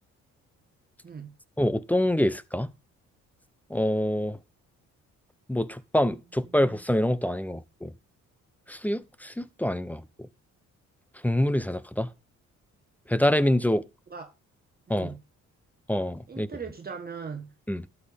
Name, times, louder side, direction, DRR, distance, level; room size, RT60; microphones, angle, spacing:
voice 1, 1.6-2.7 3.7-4.4 5.5-7.9 8.7-10.0 11.2-12.1 13.1-13.8 14.9-15.1 15.9-16.5 17.7-17.8, left 1 dB, 5° left, 0.7 m, -26 dB
voice 2, 14.9-15.2 16.3-17.5, right 6 dB, 30° right, 1.3 m, -39 dB
12.5 x 8.5 x 3.5 m
cardioid pair, 90°, 30 cm